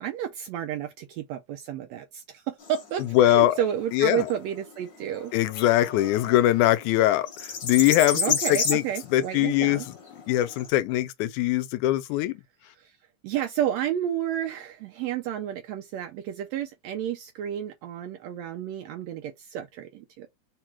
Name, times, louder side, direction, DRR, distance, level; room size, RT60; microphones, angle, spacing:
voice 1, 0.0-5.3 5.6-5.7 8.1-9.9 12.7-12.9 13.2-20.3, right 10 dB, 80° right, 1.6 m, -31 dB
sound 1, 2.6-10.7, left 5 dB, 55° left, 1.3 m, -33 dB
voice 2, 3.1-3.6 3.9-4.2 5.3-8.8 9.1-9.8 10.3-12.3, left 14 dB, 85° left, 2.0 m, -22 dB
4.8 x 2.4 x 4.3 m
omnidirectional pair, 3.5 m